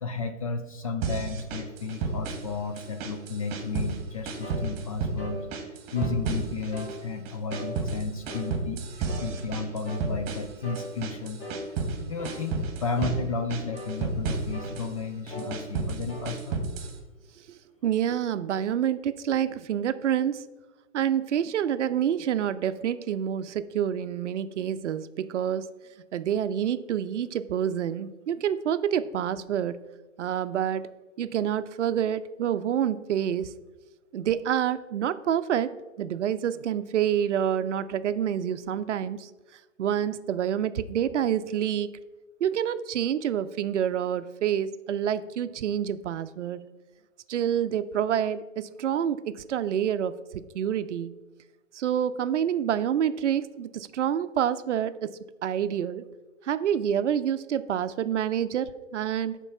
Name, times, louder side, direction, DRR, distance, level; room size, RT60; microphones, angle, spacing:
voice 1, 0.0-16.6, left 4 dB, 30° left, 7 dB, 0.4 m, -33 dB
sound 1, 1.0-2.5 2.8-4.0 4.3-5.2 5.5-7.0 7.3-12.0 12.2-13.2 13.5-14.9 15.3-17.0, right 4 dB, 30° right, 1.4 m, -32 dB
sound 2, 4.4-4.6 5.2-5.4 6.0-6.2 6.7-7.0 7.5-7.7 8.3-8.5 9.1-9.3 9.9-10.1 10.6-10.9 11.4-11.6 12.2-12.4 13.0-13.2 13.7-14.0 14.5-14.8 15.3-15.5 16.1-16.3, equal, 60° left, 1.9 m, -39 dB
voice 2, 17.5-20.4 20.9-25.7 26.1-29.8 30.2-30.9 31.2-33.5 34.1-39.3 39.8-42.0 42.4-46.6 47.3-51.1 51.7-56.0 56.4-59.4, right 9 dB, 65° right, 12 dB, 0.6 m, -27 dB
6.9 x 4.6 x 5.6 m, 1.1 s
hypercardioid pair, 135°, 39 cm